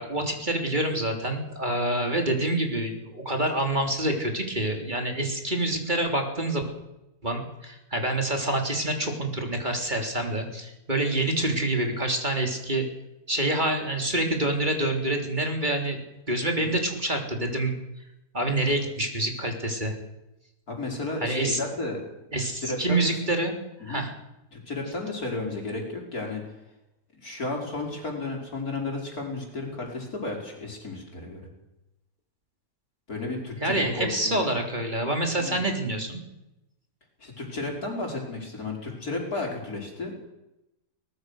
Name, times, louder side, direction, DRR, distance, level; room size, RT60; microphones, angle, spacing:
voice 1, 0.0-6.6 7.2-12.8 13.3-16.0 16.3-17.7 18.3-19.9 21.2-21.6 22.3-23.5 23.8-24.1 33.6-36.2, right 1 dB, 30° right, 3 dB, 3.6 m, -27 dB
voice 2, 20.7-22.0 22.4-23.1 23.8-24.0 24.5-26.4 27.2-31.4 33.1-34.4 35.4-35.7 37.2-40.1, left 2 dB, 75° left, 1 dB, 5.4 m, -33 dB
22.5 x 19.5 x 6.5 m, 0.91 s
omnidirectional pair, 1.6 m